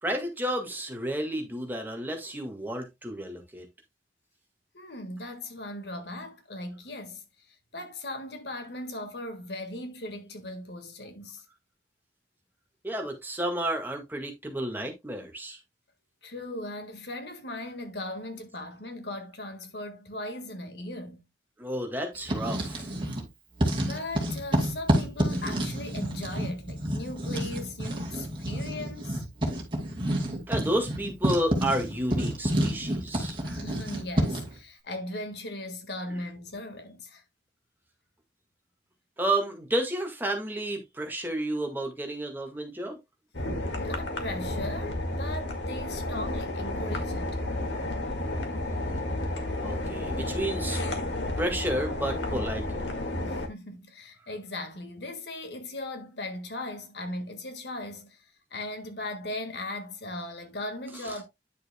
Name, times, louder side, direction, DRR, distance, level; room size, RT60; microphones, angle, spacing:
voice 1, 0.0-3.7 12.8-15.6 21.6-22.9 30.5-33.4 39.2-43.0 49.6-50.8 51.4-52.9 61.0-61.1, right 1 dB, 10° right, 1.7 m, -31 dB
voice 2, 4.7-11.4 16.2-21.3 23.9-29.2 33.4-37.2 43.8-47.4 53.2-61.3, left 1 dB, 70° left, 1.7 m, -38 dB
Writing, 22.1-23.3 23.6-34.6, equal, 25° right, 2.3 m, -29 dB
sound 1, 43.3-53.5, left 1 dB, 85° left, 2.1 m, -31 dB
10.0 x 6.6 x 2.3 m
head